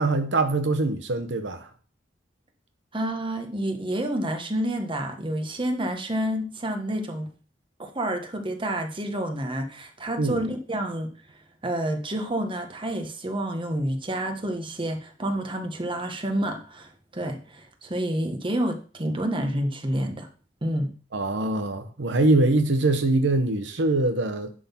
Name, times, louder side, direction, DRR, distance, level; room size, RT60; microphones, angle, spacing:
voice 1, 0.0-1.7 10.2-10.4 21.1-24.5, right 2 dB, 75° right, 0.9 m, -23 dB
voice 2, 2.9-7.3 7.8-11.1 11.6-20.3 20.6-20.9, right 1 dB, 30° right, 1.3 m, -29 dB
11.0 x 3.9 x 5.8 m
head